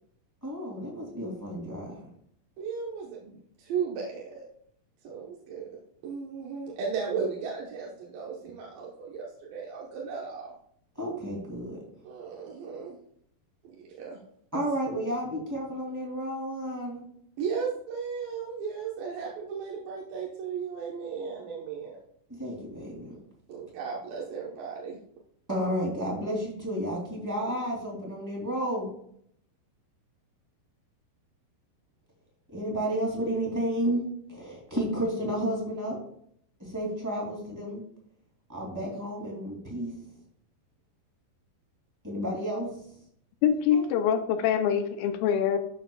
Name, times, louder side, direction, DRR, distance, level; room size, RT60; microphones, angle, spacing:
voice 1, 0.4-2.1 11.0-11.8 14.5-17.0 22.4-23.1 25.5-28.9 32.5-36.0 36.6-37.8 38.5-40.0 42.0-42.8 43.7-43.9, equal, 5° right, -2 dB, 2.0 m, -31 dB
voice 2, 2.6-4.4 5.0-10.5 12.0-13.0 13.8-14.2 17.4-22.0 23.5-25.0, right 6 dB, 75° right, -3 dB, 2.8 m, -35 dB
voice 3, 43.4-45.6, left 8 dB, 85° left, 8 dB, 2.5 m, -24 dB
12.5 x 6.9 x 2.3 m, 0.67 s
omnidirectional pair, 4.2 m